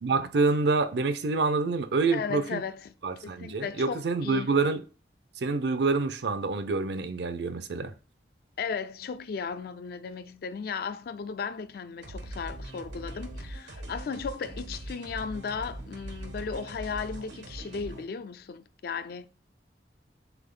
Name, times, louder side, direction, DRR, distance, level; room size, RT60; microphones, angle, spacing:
voice 1, 0.0-2.6 3.0-4.8 5.4-7.9, right 3 dB, 65° right, 0.5 m, -27 dB
voice 2, 2.1-2.9 3.2-4.5 8.6-19.3, left 5 dB, 60° left, 0.3 m, -35 dB
sound 1, 12.0-18.0, right 1 dB, 90° right, 1.1 m, -41 dB
3.8 x 3.5 x 3.7 m
head